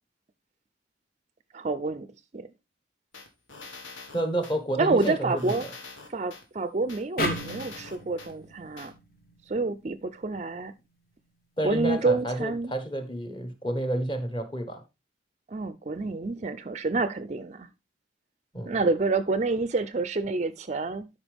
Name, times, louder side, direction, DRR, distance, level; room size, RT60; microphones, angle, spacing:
voice 1, 1.5-2.5 4.8-5.7 6.1-8.9 9.5-10.7 11.6-12.7 15.5-17.7 18.7-21.1, right 3 dB, 35° right, 0.4 m, -28 dB
sound 1, 3.1-4.6 5.0-6.4 6.9-8.3 8.8-8.9, left 4 dB, 80° left, 1.7 m, -44 dB
voice 2, 4.1-5.6 11.6-14.8 18.5-18.8, right 1 dB, 25° left, 1.3 m, -30 dB
sound 2, 7.2-10.4, left 1 dB, 45° left, 1.4 m, -35 dB
12.5 x 5.2 x 3.5 m
head